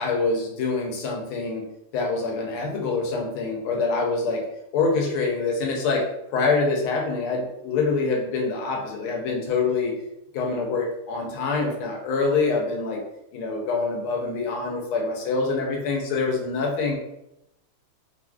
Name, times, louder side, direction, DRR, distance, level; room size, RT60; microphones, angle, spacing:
voice 1, 0.0-1.6 1.9-4.4 4.7-6.0 6.3-9.9 10.3-13.0 13.3-17.0, left 4 dB, 85° left, 0 dB, 1.5 m, -25 dB
3.3 x 2.5 x 2.2 m, 0.83 s
omnidirectional pair, 2.4 m